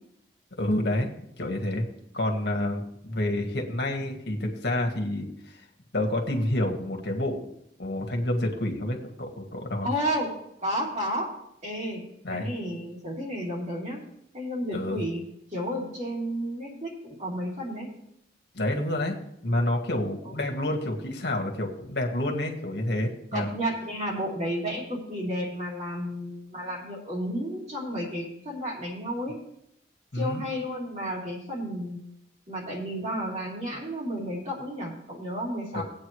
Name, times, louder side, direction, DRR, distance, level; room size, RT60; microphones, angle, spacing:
voice 1, 0.6-1.1 1.4-1.9 2.1-5.6 5.9-7.5 7.8-9.9 12.2-12.5 14.7-15.0 18.5-19.2 19.4-23.5 30.1-30.4 35.7-35.8, left 1 dB, 65° left, 1 dB, 1.8 m, -28 dB
voice 2, 9.8-10.3 10.6-11.3 11.6-14.0 14.3-15.2 15.5-17.9 20.2-20.3 23.3-29.4 30.1-32.0 32.5-35.8, equal, 40° right, -4 dB, 3.3 m, -32 dB
18.5 x 8.5 x 3.2 m, 0.75 s
head